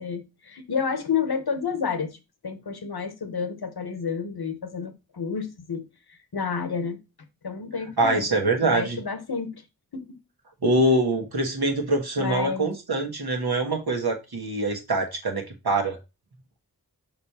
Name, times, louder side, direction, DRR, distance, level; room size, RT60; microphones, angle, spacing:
voice 1, 0.0-2.2 2.4-5.8 6.1-7.0 7.4-8.3 8.6-9.6 9.9-10.2 12.2-12.7, left 6 dB, 80° left, 1.1 m, -30 dB
voice 2, 8.0-9.0 10.6-16.0, right 2 dB, 85° right, 1.5 m, -24 dB
5.3 x 4.3 x 4.2 m
wide cardioid pair, 45°, 37 cm